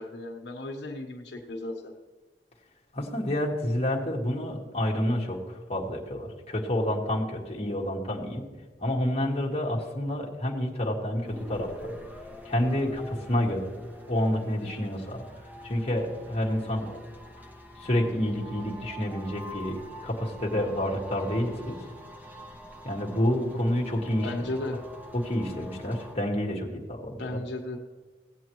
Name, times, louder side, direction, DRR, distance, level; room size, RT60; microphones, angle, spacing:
voice 1, 0.0-1.9 24.2-24.8 27.2-27.8, left 2 dB, 80° left, 0 dB, 1.2 m, -35 dB
voice 2, 2.9-8.4 8.8-11.9 12.4-13.6 14.1-17.0 17.3-17.5 17.8-21.8 22.8-24.5 25.1-27.2, left 1 dB, 35° left, -2 dB, 1.6 m, -29 dB
sound 1, 11.2-26.1, equal, 10° right, 1.0 m, -45 dB
17.0 x 8.4 x 3.1 m, 1.3 s
head